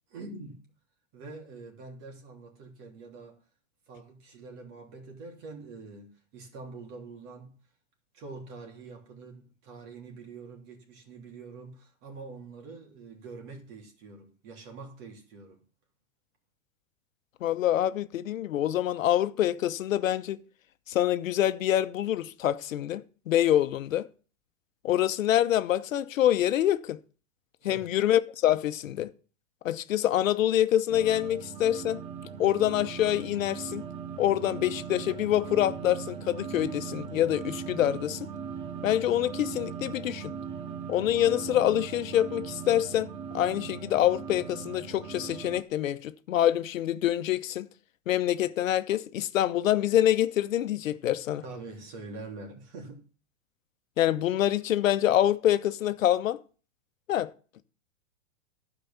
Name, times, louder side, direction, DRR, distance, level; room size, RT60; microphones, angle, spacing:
voice 1, 0.1-0.7 1.1-3.4 3.9-7.5 8.1-15.6 27.6-28.0 51.4-53.1, right 3 dB, 45° right, 3.1 m, -45 dB
voice 2, 17.4-20.4 20.9-24.1 24.8-27.0 27.6-29.1 29.6-32.0 32.4-33.8 34.2-38.3 38.8-40.3 40.9-43.1 43.3-47.7 48.1-51.4 54.0-56.4 57.1-57.3, left 12 dB, 85° left, 1.0 m, -26 dB
sound 1, 30.9-45.6, right 7 dB, 15° right, 0.4 m, -39 dB
11.5 x 5.1 x 7.1 m
supercardioid pair, 145°, 39 cm